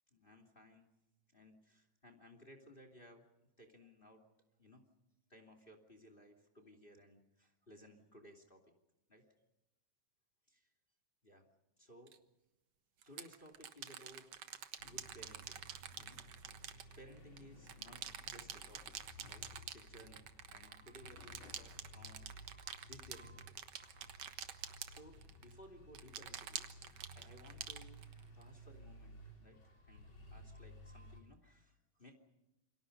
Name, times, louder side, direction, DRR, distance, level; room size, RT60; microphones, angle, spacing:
voice 1, 0.1-0.9 1.3-3.3 3.6-4.2 4.6-4.8 5.3-8.7 9.1-9.3 10.5-10.7 11.2-11.4 11.8-12.2 13.0-14.3 14.8-15.6 16.0-16.4 17.0-19.0 19.2-23.6 24.8-28.0 28.3-29.6 29.9-32.2, equal, 20° left, 6 dB, 2.6 m, -60 dB
sound 1, 12.1-12.2 13.0-17.4 17.7-25.5 26.0-28.4, right 9 dB, 60° right, 2.2 m, -48 dB
sound 2, 14.8-31.2, equal, 40° left, 4.7 m, -57 dB
28.5 x 25.0 x 5.3 m, 0.96 s
omnidirectional pair, 3.4 m